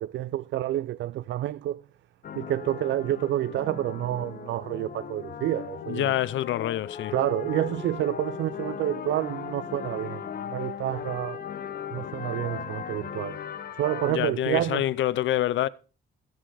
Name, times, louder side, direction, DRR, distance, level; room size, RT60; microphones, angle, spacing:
voice 1, 0.0-1.8 2.4-6.1 7.1-10.2 10.5-11.4 11.9-13.4 13.8-14.8, right 13 dB, 70° right, 0.4 m, -29 dB
concert church yard, 2.2-14.1, left 8 dB, 50° left, 1.1 m, -37 dB
voice 2, 5.8-7.1 14.1-15.7, left 13 dB, 75° left, 0.6 m, -26 dB
15.5 x 5.9 x 4.9 m
cardioid pair, 90°, 20 cm